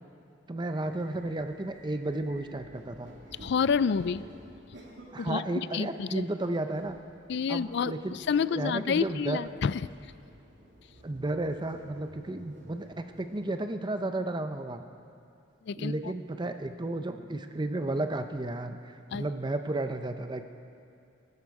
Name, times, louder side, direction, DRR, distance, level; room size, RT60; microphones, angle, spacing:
voice 1, 0.5-3.1 5.1-7.0 7.5-8.2 8.6-9.4 11.0-14.9 15.8-20.4, right 2 dB, 25° right, 8 dB, 0.6 m, -33 dB
sound 1, 0.7-13.4, equal, 65° right, 2.8 m, -53 dB
voice 2, 3.4-4.2 5.2-6.2 7.3-10.1 15.6-15.9 19.1-19.3, left 6 dB, 60° left, 17 dB, 0.4 m, -29 dB
22.0 x 12.5 x 4.8 m, 2.5 s
head